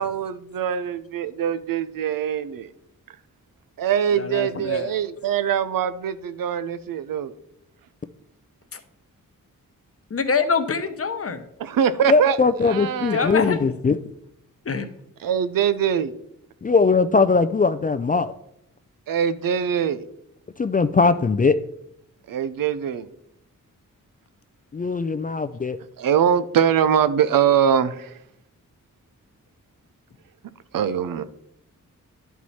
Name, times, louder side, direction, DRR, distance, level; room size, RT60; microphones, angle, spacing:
voice 1, 0.0-2.7 3.8-7.3 11.6-12.4 12.6-13.4 15.2-16.1 19.1-20.0 22.3-23.1 26.0-28.2 30.7-31.2, right 8 dB, 80° right, 13 dB, 0.6 m, -23 dB
voice 2, 4.2-4.9 8.7-8.8 10.1-11.5 13.1-13.6 14.6-14.9, left 5 dB, 45° left, 9 dB, 0.9 m, -25 dB
voice 3, 12.1-14.0 16.6-18.3 20.6-21.6 24.7-25.8, left 4 dB, 25° left, 10 dB, 0.4 m, -20 dB
11.0 x 4.6 x 4.2 m, 0.77 s
cardioid pair, 65°, 33 cm